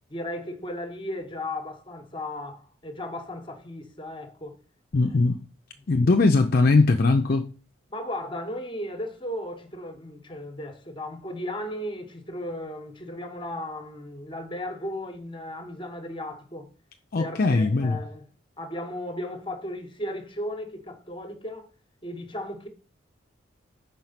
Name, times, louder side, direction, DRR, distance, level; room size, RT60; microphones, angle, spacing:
voice 1, 0.1-4.6 7.9-16.7 17.2-18.2 18.6-21.7 22.0-22.7, left 1 dB, 25° left, 1.0 m, -35 dB
voice 2, 4.9-5.4 5.9-7.5 17.1-18.0, left 3 dB, 45° left, 0.5 m, -20 dB
5.7 x 4.5 x 5.7 m
head